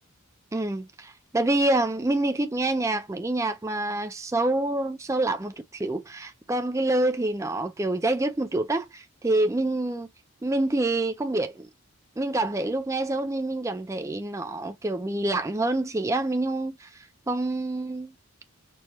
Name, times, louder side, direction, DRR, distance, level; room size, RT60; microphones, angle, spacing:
voice 1, 0.5-10.1 10.4-11.7 12.2-18.1, right 2 dB, 15° right, 0.4 m, -27 dB
4.5 x 2.1 x 2.9 m
head